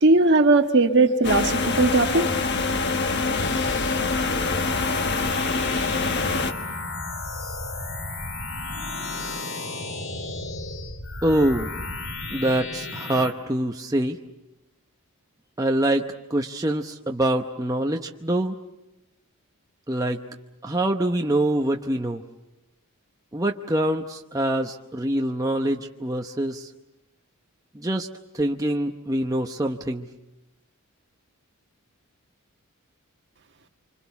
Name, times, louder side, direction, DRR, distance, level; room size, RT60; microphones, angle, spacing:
voice 1, 0.0-2.3, right 2 dB, 50° right, 5 dB, 1.5 m, -18 dB
sound 1, 1.2-6.5, left 3 dB, 50° left, 1.4 m, -25 dB
sound 2, 3.4-13.3, left 2 dB, 70° left, 3.9 m, -33 dB
voice 2, 11.2-11.7 12.3-14.2 15.6-18.6 19.9-20.2 20.6-22.2 23.3-26.7 27.7-28.1 28.3-30.1, right 1 dB, 15° right, 2 dB, 0.8 m, -25 dB
27.0 x 26.0 x 7.1 m, 0.97 s
head